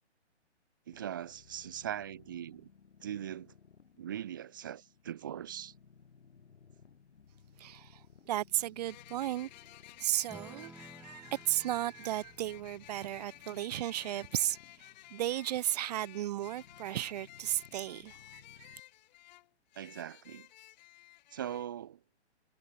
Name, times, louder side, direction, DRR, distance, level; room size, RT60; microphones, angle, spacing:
sound 1, 0.9-18.8, left 6 dB, 70° left, 5.2 m, -61 dB
voice 1, 0.9-2.7 3.0-3.5 4.0-5.7 19.8-20.5 21.3-22.0, right 10 dB, 20° right, 0.4 m, -40 dB
sound 2, 7.2-7.3 8.9-21.7, left 16 dB, 40° left, 4.8 m, -55 dB
voice 2, 7.6-9.5 10.0-18.8, right 13 dB, 35° right, 0.8 m, -35 dB
Acoustic guitar / Strum, 10.3-15.1, right 2 dB, 5° right, 2.5 m, -56 dB
hypercardioid pair, 140°, 35 cm